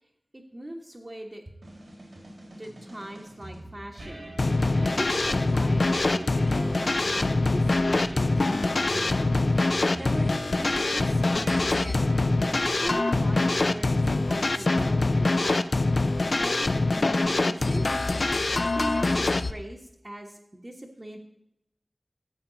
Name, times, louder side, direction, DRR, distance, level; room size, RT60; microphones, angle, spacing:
voice 1, 0.3-1.4 2.6-9.6 10.0-10.3 10.6-12.3 12.8-15.6 16.2-18.0 18.7-21.2, right 1 dB, 35° right, -3 dB, 1.3 m, -40 dB
sound 1, 1.6-15.1, right 1 dB, 90° right, 4.1 m, -42 dB
sound 2, 4.4-19.5, left 2 dB, 60° left, 0.6 m, -24 dB
15.0 x 7.8 x 4.0 m, 0.83 s
wide cardioid pair, 60°, 0 cm